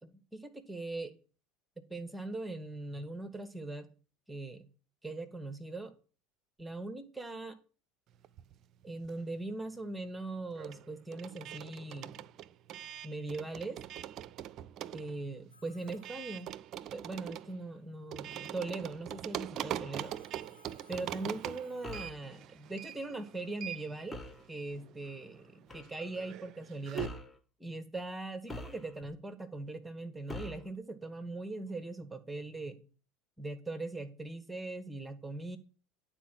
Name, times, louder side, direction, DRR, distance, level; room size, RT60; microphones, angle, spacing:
voice 1, 0.0-1.1 1.8-3.9 4.3-4.7 5.0-5.9 6.6-7.6 8.8-12.2 13.0-13.8 14.9-16.5 16.9-20.2 20.9-24.2 24.5-27.1 27.6-32.8 33.4-35.6, right 2 dB, 10° right, 11 dB, 1.2 m, -40 dB
sound 1, 8.2-9.5 9.8-27.1, right 11 dB, 45° right, 0.5 m, -43 dB
Telephone, 15.5-17.0 20.0-22.8, left 5 dB, 85° left, 1.2 m, -64 dB
sound 2, 21.8-22.2 24.1-24.5 25.7-25.9 27.0-27.4 28.5-29.1 30.3-30.7, left 2 dB, 15° left, 1.2 m, -43 dB
11.0 x 4.4 x 7.6 m, 0.38 s
figure-of-eight pair, 70°, 0 cm